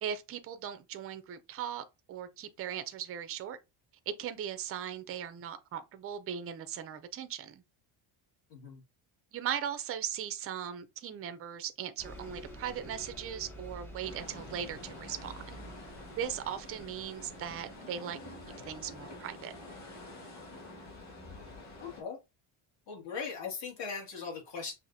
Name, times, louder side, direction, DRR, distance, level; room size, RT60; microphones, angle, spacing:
voice 1, 0.0-3.6 4.1-7.6 9.3-15.6 16.2-18.2 18.7-19.5, right 9 dB, 30° right, 0.4 m, -38 dB
voice 2, 8.5-8.8 21.8-22.2 22.9-24.7, left 5 dB, 55° left, 2.0 m, -39 dB
Bus, 12.0-17.7, equal, 5° left, 0.7 m, -49 dB
sound 1, 14.0-22.0, left 2 dB, 35° left, 1.8 m, -48 dB
5.6 x 2.6 x 2.6 m
cardioid pair, 155°, 50 cm